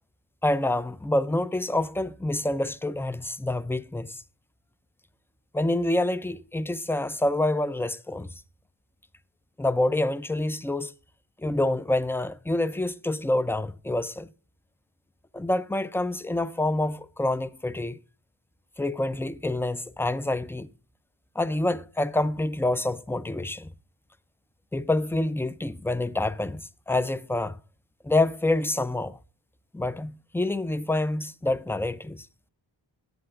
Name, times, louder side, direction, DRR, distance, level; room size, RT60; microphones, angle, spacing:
voice 1, 0.4-4.2 5.5-8.3 9.6-10.9 11.4-14.3 15.3-18.0 18.8-20.7 21.4-23.7 24.7-27.6 28.0-29.2 29.7-32.3, left 1 dB, 5° left, 0.4 m, -27 dB
17.5 x 7.7 x 2.5 m
wide cardioid pair, 55°, 49 cm